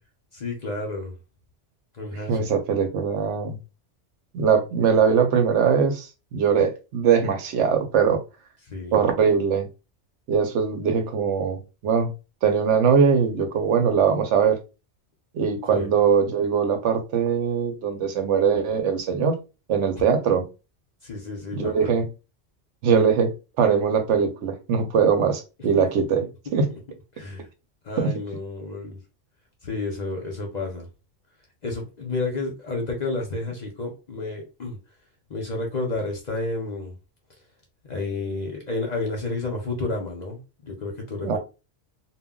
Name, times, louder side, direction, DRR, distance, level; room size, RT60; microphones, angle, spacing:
voice 1, 0.3-1.1 2.0-2.5 8.7-9.0 15.7-15.9 21.0-21.8 25.8-25.9 26.7-26.8 27.1-27.5 27.8-29.0 29.6-30.9 31.6-34.8 35.3-36.9 37.9-41.4, left 3 dB, 45° left, 0.6 m, -31 dB
voice 2, 2.3-3.6 4.3-8.2 8.9-9.7 10.3-12.1 12.4-14.6 15.3-19.3 19.7-20.5 21.5-22.1 22.8-26.2 26.5-26.7 28.0-28.1 41.2-41.4, right 6 dB, 75° right, 1.0 m, -21 dB
2.2 x 2.1 x 3.6 m
omnidirectional pair, 1.2 m